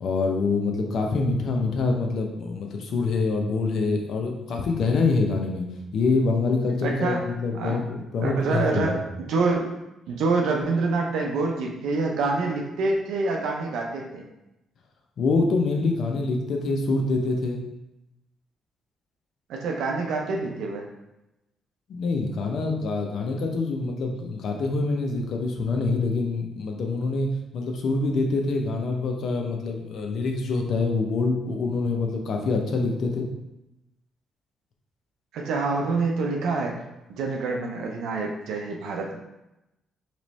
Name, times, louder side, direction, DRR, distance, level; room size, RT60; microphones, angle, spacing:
voice 1, 0.0-5.7 5.9-9.0 15.2-17.6 21.9-27.3 27.5-33.2, left 3 dB, 65° left, 2 dB, 0.7 m, -25 dB
voice 2, 6.8-7.3 7.5-7.8 8.2-9.7 10.1-14.2 19.5-20.9 35.3-36.8 37.1-39.2, right 3 dB, 85° right, 0 dB, 0.5 m, -26 dB
3.1 x 3.0 x 4.1 m, 0.93 s
cardioid pair, 90°, 0 cm